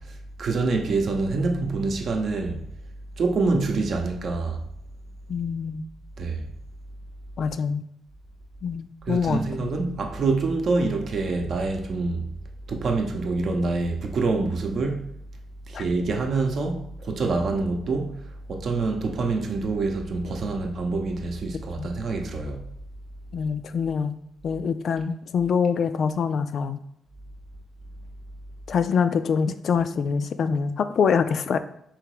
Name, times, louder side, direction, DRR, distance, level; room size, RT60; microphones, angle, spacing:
voice 1, 0.1-2.6 3.2-4.6 6.2-6.4 9.1-12.3 12.7-15.1 15.7-22.7, right 3 dB, 55° right, 0.7 m, -26 dB
voice 2, 5.3-5.8 7.4-7.8 8.6-9.7 15.7-15.8 21.8-21.9 23.3-24.2 24.4-26.8 28.7-31.6, left 6 dB, 60° left, 0.3 m, -25 dB
3.5 x 2.9 x 4.7 m
cardioid pair, 85°, 0 cm